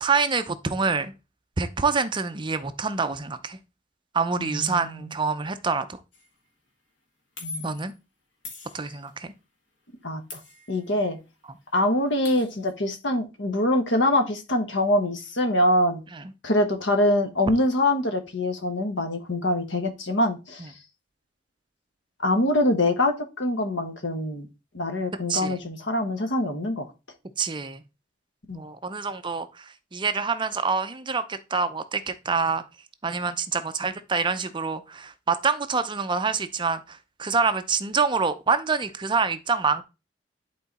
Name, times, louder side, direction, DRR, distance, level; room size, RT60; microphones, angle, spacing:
voice 1, 0.0-1.1 1.6-3.6 4.1-6.0 7.6-7.9 8.7-9.3 16.1-16.2 20.6-20.7 25.3-25.6 27.4-27.8 28.5-32.6 33.0-39.8, right 5 dB, 25° right, 0.6 m, -26 dB
voice 2, 4.4-5.1 7.4-7.8 10.0-10.4 10.7-11.2 11.7-16.0 16.4-20.7 22.2-24.5 24.7-26.9 28.5-28.6, left 1 dB, 70° left, 1.4 m, -24 dB
sound 1, 6.1-6.3 7.4-7.9 8.4-9.3 10.3-11.2 11.5-11.6 11.8-12.7, left 4 dB, 85° left, 2.4 m, -42 dB
10.5 x 3.9 x 4.2 m
head